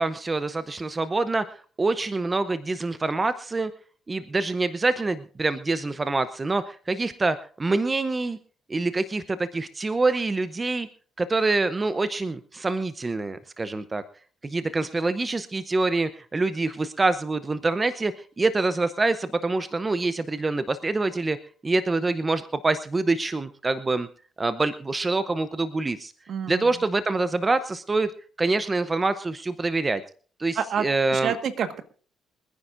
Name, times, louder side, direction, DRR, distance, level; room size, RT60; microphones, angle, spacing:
voice 1, 0.0-3.7 4.1-8.4 8.7-10.9 11.2-14.0 14.4-21.4 21.6-24.1 24.4-26.1 26.5-28.1 28.4-30.0 30.4-31.3, right 3 dB, 25° right, 12 dB, 0.7 m, -25 dB
voice 2, 26.3-26.7 30.5-31.8, right 7 dB, 65° right, 9 dB, 1.5 m, -29 dB
26.0 x 9.9 x 2.6 m, 0.42 s
cardioid pair, 90°, 0 cm